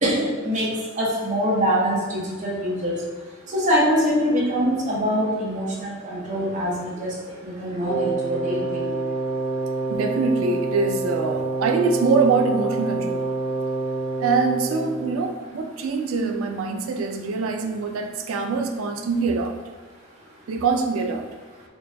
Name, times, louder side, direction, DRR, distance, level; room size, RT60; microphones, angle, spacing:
voice 1, 1.0-2.9 3.5-7.1 7.4-8.9, equal, 35° right, -5 dB, 0.9 m, -23 dB
Wind instrument woodwind instrument, 7.8-15.1, right 3 dB, 20° left, 0.8 m, -27 dB
voice 2, 9.9-13.2 14.2-19.5 20.5-21.2, right 4 dB, 85° right, 4 dB, 0.4 m, -24 dB
4.1 x 2.2 x 3.2 m, 1.4 s
head